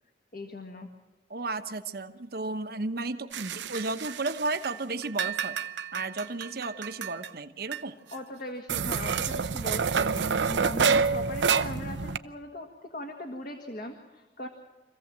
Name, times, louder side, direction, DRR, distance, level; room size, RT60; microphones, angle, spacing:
voice 1, 0.3-0.9 8.1-14.5, left 1 dB, 50° left, 3 dB, 1.6 m, -39 dB
voice 2, 1.3-5.6 5.9-8.0, right 3 dB, 60° right, 8 dB, 1.0 m, -33 dB
sound 1, 3.3-4.8 5.0-7.3 7.7-7.8 8.1-8.2 8.7-12.2, right 5 dB, 90° right, 0.7 m, -28 dB
25.5 x 15.5 x 7.5 m, 1.1 s
head